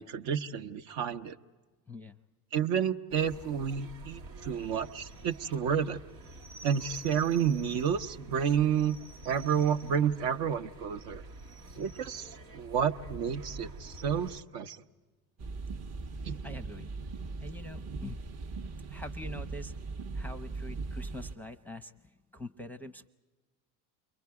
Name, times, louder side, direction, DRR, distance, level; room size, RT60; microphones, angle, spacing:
voice 1, 0.0-1.4 2.5-6.0 6.6-9.0 9.2-11.2 11.8-14.8 16.2-16.4, right 8 dB, 65° right, 8 dB, 0.8 m, -30 dB
voice 2, 1.9-2.2 16.4-16.9 17.4-18.2 18.9-19.7 20.1-23.1, left 2 dB, 5° left, 5 dB, 0.6 m, -44 dB
sound 1, 3.1-14.4, right 2 dB, 90° right, 1.1 m, -48 dB
sound 2, 15.4-21.3, right 3 dB, 35° right, 0.7 m, -39 dB
29.0 x 23.0 x 4.7 m, 1.3 s
hypercardioid pair, 75°, 47 cm